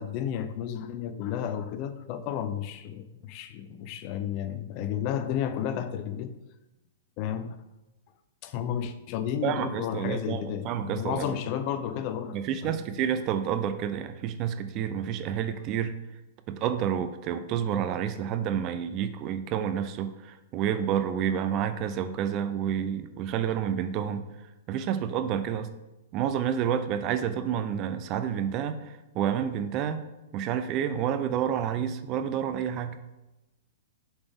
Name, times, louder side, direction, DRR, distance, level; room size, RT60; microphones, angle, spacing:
voice 1, 0.0-6.3 7.2-7.6 8.4-12.8, left 9 dB, 40° left, 12 dB, 0.5 m, -32 dB
voice 2, 9.4-11.3 12.3-16.0 16.5-24.3 24.7-25.7 26.1-28.8 29.1-30.1 30.3-33.0, right 9 dB, 35° right, 10 dB, 0.5 m, -29 dB
6.8 x 4.1 x 3.5 m, 1.0 s
hypercardioid pair, 130°, 0 cm